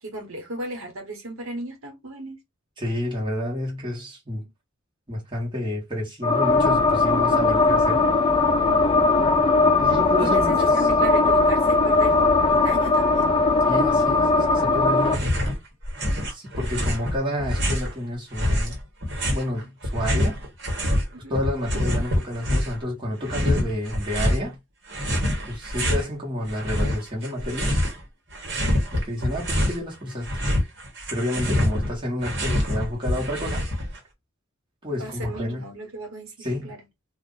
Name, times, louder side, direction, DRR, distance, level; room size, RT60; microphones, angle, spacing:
voice 1, 0.0-2.4 10.2-12.2 12.5-13.3 21.1-21.3 34.9-36.8, right 1 dB, 80° right, 1.2 m, -36 dB
voice 2, 2.8-4.5 5.1-8.0 9.8-10.9 13.7-15.6 16.3-18.8 19.3-20.5 21.3-24.6 25.5-27.8 28.9-30.5 31.1-33.7 34.8-35.6 36.4-36.7, left 1 dB, 25° right, 1.2 m, -30 dB
sound 1, 6.2-15.1, left 3 dB, 25° left, 0.4 m, -19 dB
sound 2, 15.0-15.6 15.8-17.9 18.3-21.0 21.3-22.8 23.2-24.4 24.9-26.1 26.5-28.0 28.3-29.8 30.1-34.0, left 1 dB, 55° right, 1.2 m, -25 dB
2.5 x 2.4 x 3.8 m
head